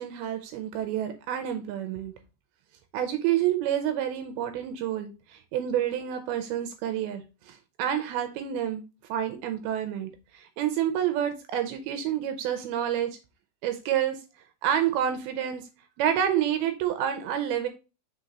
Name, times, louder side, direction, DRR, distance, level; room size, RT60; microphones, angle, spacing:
voice 1, 0.0-2.1 2.9-8.8 9.1-13.2 13.6-14.2 14.6-15.7 16.0-17.7, right 10 dB, 85° right, 7 dB, 2.2 m, -28 dB
6.1 x 3.9 x 4.0 m, 0.30 s
omnidirectional pair, 5.2 m